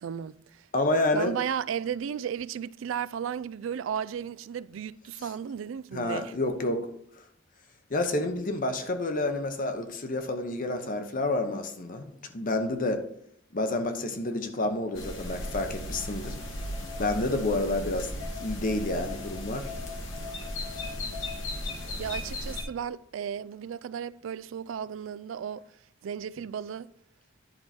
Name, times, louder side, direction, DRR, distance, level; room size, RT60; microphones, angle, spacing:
voice 1, 0.0-0.7 1.1-6.3 21.7-25.6 26.0-26.9, right 8 dB, 80° right, 0.3 m, -34 dB
voice 2, 0.7-1.3 5.9-6.8 7.9-13.0 13.5-16.4 17.0-18.1 18.4-19.7, left 2 dB, 45° left, 0.9 m, -29 dB
sound 1, 14.9-22.6, left 1 dB, 85° left, 2.0 m, -36 dB
10.5 x 4.6 x 4.3 m
head